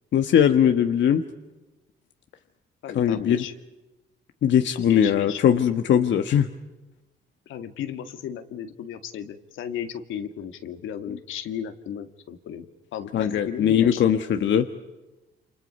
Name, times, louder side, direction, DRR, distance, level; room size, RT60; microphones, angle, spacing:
voice 1, 0.1-1.2 2.9-3.4 4.4-6.5 13.1-14.7, left 9 dB, 65° left, 6 dB, 1.4 m, -20 dB
voice 2, 2.8-3.5 4.8-5.4 7.5-14.0, left 9 dB, 85° left, 7 dB, 2.1 m, -35 dB
28.5 x 28.0 x 5.5 m, 1.1 s
cardioid pair, 90°, 20 cm